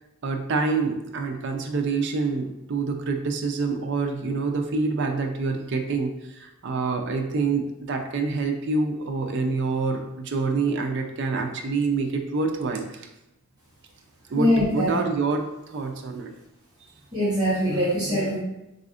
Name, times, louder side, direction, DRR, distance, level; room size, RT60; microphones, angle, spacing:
voice 1, 0.2-13.1 14.3-16.3, right 4 dB, 55° right, 4 dB, 0.4 m, -26 dB
voice 2, 14.4-14.9 17.1-18.4, equal, 20° right, -10 dB, 1.0 m, -22 dB
4.0 x 2.5 x 2.4 m, 0.92 s
head